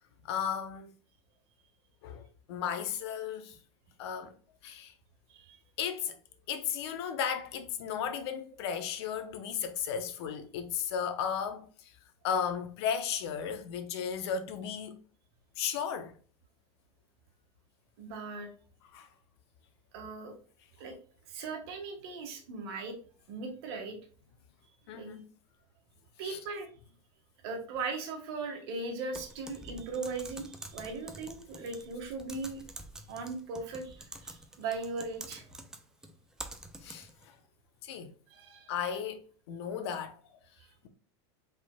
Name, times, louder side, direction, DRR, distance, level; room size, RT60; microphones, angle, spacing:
voice 1, 0.2-0.9 2.0-3.6 4.0-4.3 4.6-4.9 5.8-6.2 6.5-11.9 12.2-15.0 15.6-16.1 18.9-19.1 24.9-25.3 26.2-26.4 36.8-37.3 37.8-38.1 38.7-39.2 39.5-40.2, left 7 dB, 70° left, 0.8 m, -35 dB
voice 2, 18.0-18.5 19.9-20.3 20.8-20.9 21.3-22.9 23.3-24.0 24.9-25.1 26.2-26.7 27.4-32.6 33.1-35.4 38.3-38.7, right 4 dB, 60° right, 1.4 m, -38 dB
Typing, 29.1-37.3, right 1 dB, 5° right, 0.3 m, -47 dB
5.0 x 3.7 x 2.2 m
supercardioid pair, 160°, 14 cm